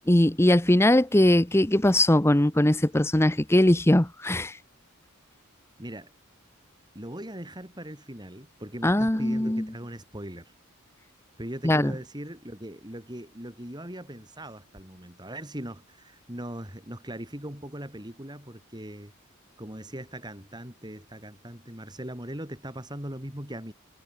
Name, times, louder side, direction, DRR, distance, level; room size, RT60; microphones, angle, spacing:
voice 1, 0.1-4.6 8.8-9.7 11.6-11.9, left 1 dB, 10° left, 0.8 m, -21 dB
voice 2, 5.8-6.1 6.9-10.5 11.4-19.1 19.6-23.7, right 1 dB, 20° right, 4.6 m, -40 dB
head